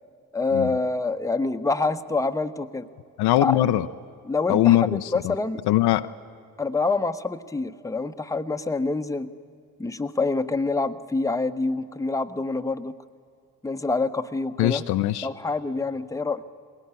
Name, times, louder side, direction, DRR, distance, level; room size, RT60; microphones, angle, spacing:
voice 1, 0.3-2.9 3.4-3.6 4.2-5.6 6.6-9.3 9.8-13.0 13.6-14.8 15.2-16.4, left 3 dB, 5° left, 9 dB, 0.9 m, -26 dB
voice 2, 3.2-3.9 4.5-5.3 5.7-6.1 14.6-15.3, left 14 dB, 60° left, 11 dB, 0.7 m, -21 dB
20.5 x 18.0 x 8.9 m, 2.3 s
hypercardioid pair, 40°, 43 cm